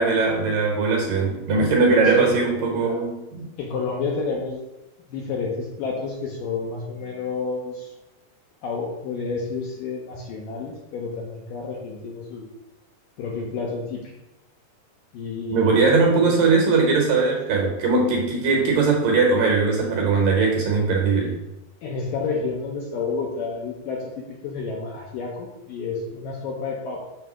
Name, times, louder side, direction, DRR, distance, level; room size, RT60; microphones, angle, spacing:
voice 1, 0.0-3.5 15.5-21.4, right 4 dB, 70° right, 0 dB, 2.3 m, -20 dB
voice 2, 2.0-3.1 3.6-4.6 5.1-7.9 8.6-12.5 13.2-14.0 15.1-16.4 21.8-24.0 24.4-27.1, left 4 dB, 75° left, -2 dB, 2.1 m, -30 dB
7.2 x 3.3 x 6.0 m, 0.97 s
omnidirectional pair, 4.7 m